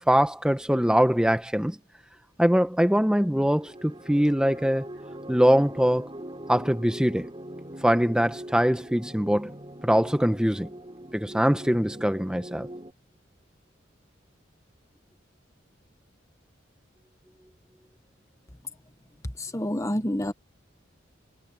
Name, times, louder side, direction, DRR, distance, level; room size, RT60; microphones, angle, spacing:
voice 1, 0.0-1.8 2.4-4.9 5.3-6.1 6.5-7.3 7.8-9.5 9.8-10.7 11.1-12.7, equal, 5° right, 1.0 m, -23 dB
sound 1, 3.3-12.9, right 1 dB, 25° right, 5.5 m, -42 dB
voice 2, 19.5-20.3, left 1 dB, 15° left, 1.1 m, -27 dB
head